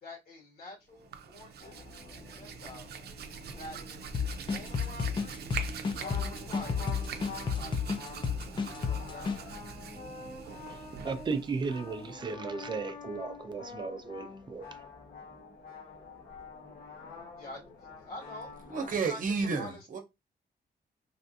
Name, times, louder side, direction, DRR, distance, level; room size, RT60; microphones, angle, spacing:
voice 1, 0.0-1.8 2.3-2.9 3.6-5.6 5.9-7.7 8.0-9.6 17.4-19.2 19.5-19.8, left 1 dB, 70° left, 1.9 m, -48 dB
Hands, 0.9-12.3, right 6 dB, 90° right, 0.5 m, -43 dB
sound 1, 1.6-19.0, left 5 dB, 90° left, 1.2 m, -47 dB
sound 2, 4.1-9.4, left 6 dB, 30° left, 0.4 m, -32 dB
voice 2, 10.7-14.8, right 4 dB, 30° right, 0.4 m, -36 dB
voice 3, 18.7-20.0, right 4 dB, 55° right, 0.8 m, -31 dB
3.3 x 2.5 x 2.6 m
wide cardioid pair, 170°, 16 cm